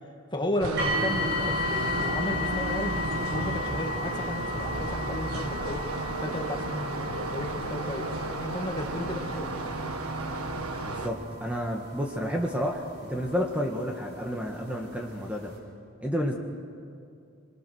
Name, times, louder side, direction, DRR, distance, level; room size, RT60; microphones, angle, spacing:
voice 1, 0.3-5.8 6.2-9.5, left 1 dB, 20° left, 2 dB, 2.1 m, -34 dB
sound 1, 0.6-11.1, right 2 dB, 85° right, 1.6 m, -33 dB
sound 2, 0.8-13.6 14.5-14.6 15.2-15.3, left 3 dB, 55° right, 7.9 m, -35 dB
voice 2, 10.8-15.5 16.0-16.3, equal, 5° right, 0 dB, 1.6 m, -30 dB
28.5 x 21.5 x 6.4 m, 2.4 s
head